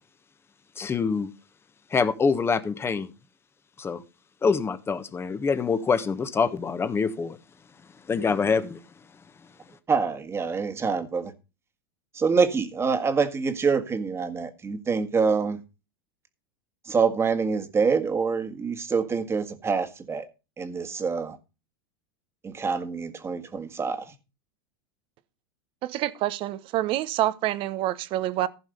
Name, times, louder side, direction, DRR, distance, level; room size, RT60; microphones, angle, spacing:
voice 1, 0.8-1.3 1.9-3.1 3.8-4.0 4.4-7.4 8.1-8.8, left 5 dB, 20° left, 1.4 m, -25 dB
voice 2, 9.9-11.3 12.1-15.6 16.9-20.3 20.6-21.4 22.4-24.1, right 5 dB, 20° right, 1.8 m, -26 dB
voice 3, 25.8-28.5, right 14 dB, 45° right, 1.0 m, -27 dB
15.5 x 5.4 x 5.3 m
hypercardioid pair, 95°, 12 cm